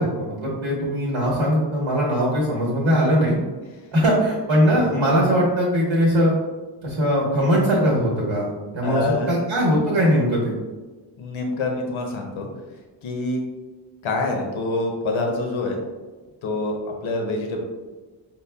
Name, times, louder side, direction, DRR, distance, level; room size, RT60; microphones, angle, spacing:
voice 1, 0.0-3.3 3.9-6.3 6.8-8.5 8.7-10.5, equal, 75° right, -4 dB, 1.1 m, -20 dB
voice 2, 8.8-9.5 11.2-12.5 13.0-13.4 14.0-15.8 16.4-16.8 17.0-17.6, left 2 dB, 85° left, 2 dB, 0.7 m, -26 dB
5.3 x 2.0 x 2.2 m, 1.3 s
wide cardioid pair, 115°, 47 cm